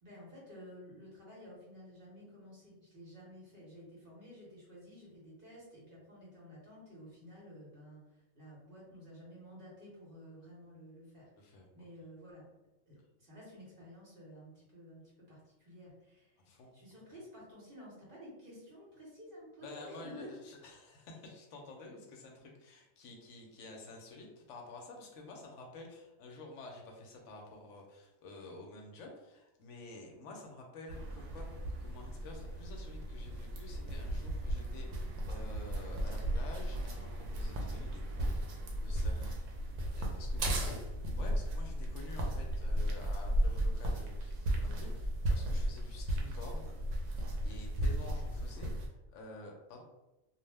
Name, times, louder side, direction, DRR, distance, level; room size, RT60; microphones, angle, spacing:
voice 1, 0.0-12.5 12.9-16.4 16.7-20.3 40.5-40.8, equal, 45° right, -6 dB, 1.0 m, -52 dB
voice 2, 16.4-16.7 19.6-31.5 31.8-39.3 40.0-40.8 41.2-46.7 47.4-49.8, left 2 dB, 70° left, 1 dB, 0.9 m, -50 dB
sound 1, 30.9-48.9, right 1 dB, 70° right, 0.9 m, -35 dB
2.4 x 2.1 x 3.3 m, 1.0 s
omnidirectional pair, 1.4 m